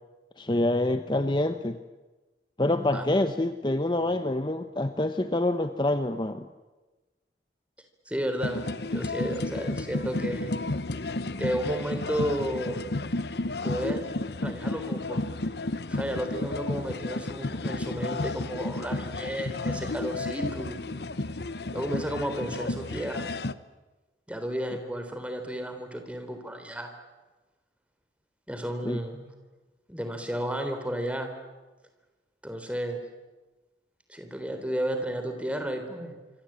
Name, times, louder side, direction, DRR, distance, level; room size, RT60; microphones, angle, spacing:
voice 1, 0.4-1.8 2.6-6.5 28.8-29.0, left 1 dB, 25° left, 9 dB, 0.9 m, -26 dB
voice 2, 8.1-10.5 11.4-12.9 13.6-14.0 14.4-15.3 15.9-20.8 21.7-23.3 24.3-26.9 28.5-29.2 29.9-31.3 32.4-33.0 34.1-36.1, right 1 dB, 5° right, 6 dB, 3.7 m, -32 dB
sound 1, 8.4-23.5, left 2 dB, 65° left, 0.9 m, -32 dB
26.0 x 25.5 x 8.9 m, 1.2 s
head